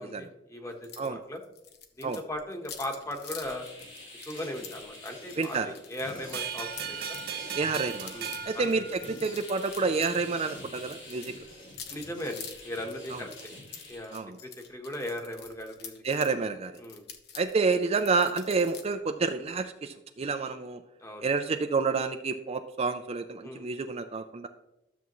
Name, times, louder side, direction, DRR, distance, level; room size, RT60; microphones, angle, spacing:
voice 1, 0.0-1.4 2.0-3.6 4.3-7.2 8.1-8.8 11.9-13.5 13.9-16.3 16.8-17.0 21.0-21.3 23.4-23.7, left 1 dB, 15° left, 3 dB, 1.2 m, -38 dB
sound 1, 0.8-1.1 1.3-7.2 7.7-10.2 10.4-16.3 16.7-18.8, left 7 dB, 60° left, 1.0 m, -46 dB
sound 2, 3.1-14.2, left 1 dB, 80° left, 3.9 m, -46 dB
sound 3, 6.3-9.6, right 8 dB, 60° right, 0.8 m, -38 dB
voice 2, 7.6-8.1 8.5-11.3 13.1-13.2 14.1-14.3 16.0-16.7 17.4-20.8 21.2-24.5, right 4 dB, 35° right, 7 dB, 0.4 m, -29 dB
13.0 x 7.0 x 3.1 m, 0.89 s
head